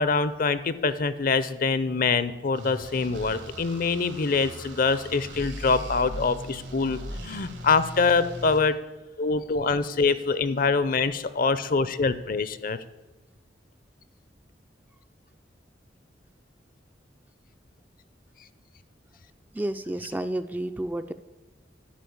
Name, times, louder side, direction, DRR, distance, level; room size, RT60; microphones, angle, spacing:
voice 1, 0.0-8.7 9.2-12.8, left 4 dB, 50° left, 14 dB, 0.6 m, -24 dB
sound 1, 2.5-8.6, equal, 80° right, 2.1 m, -39 dB
voice 2, 19.5-21.1, right 1 dB, 10° right, 9 dB, 0.4 m, -30 dB
11.5 x 4.9 x 8.6 m, 1.1 s
head